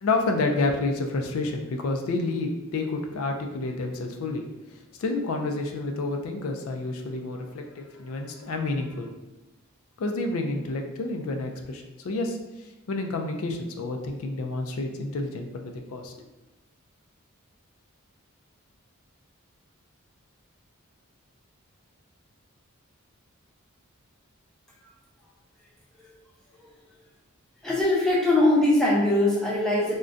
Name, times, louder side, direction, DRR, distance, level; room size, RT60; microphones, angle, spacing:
voice 1, 0.0-4.4 5.0-9.1 10.0-12.4 12.9-16.1, left 2 dB, 70° left, 3 dB, 0.4 m, -29 dB
voice 2, 27.6-30.0, left 1 dB, 5° left, -5 dB, 0.5 m, -22 dB
3.7 x 2.1 x 2.5 m, 1.0 s
head